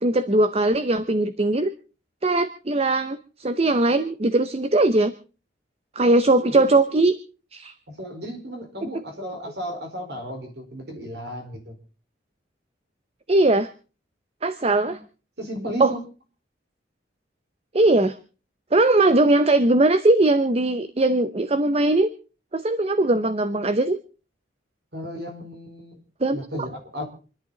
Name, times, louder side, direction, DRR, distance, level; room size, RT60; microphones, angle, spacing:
voice 1, 0.0-1.7 2.2-5.1 6.0-7.1 7.5-7.7 9.2-9.3 13.3-13.7 14.4-15.0 15.8-15.9 17.7-18.2 18.7-22.1 22.5-24.0 26.2-26.4, right 2 dB, 35° right, 12 dB, 0.8 m, -20 dB
voice 2, 6.5-6.8 7.9-11.8 14.8-14.9 15.4-16.0 24.9-26.0 26.3-27.0, equal, 60° right, 4 dB, 4.6 m, -34 dB
27.5 x 11.0 x 4.0 m, 0.36 s
head